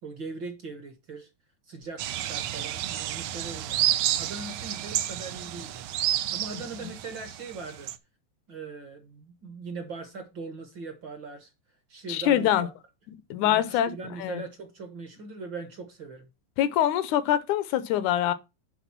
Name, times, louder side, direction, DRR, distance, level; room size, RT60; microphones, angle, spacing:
voice 1, 0.0-1.3 1.6-5.8 6.3-7.9 8.5-11.5 11.9-12.7 13.4-16.3, right 4 dB, 55° right, 1.3 m, -40 dB
sound 1, 2.0-8.0, right 12 dB, 85° right, 1.4 m, -30 dB
voice 2, 12.1-12.7 13.3-13.9 14.2-14.4 16.6-18.3, left 11 dB, 80° left, 1.9 m, -24 dB
10.0 x 3.9 x 5.9 m
omnidirectional pair, 3.7 m